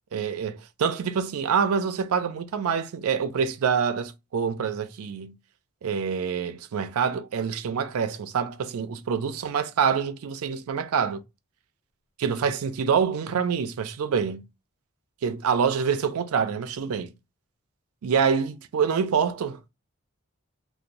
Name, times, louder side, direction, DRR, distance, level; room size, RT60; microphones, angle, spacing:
voice 1, 0.1-5.3 5.8-11.2 12.2-14.4 15.2-17.1 18.0-19.7, right 6 dB, 80° right, 0.4 m, -26 dB
2.5 x 2.0 x 2.9 m
head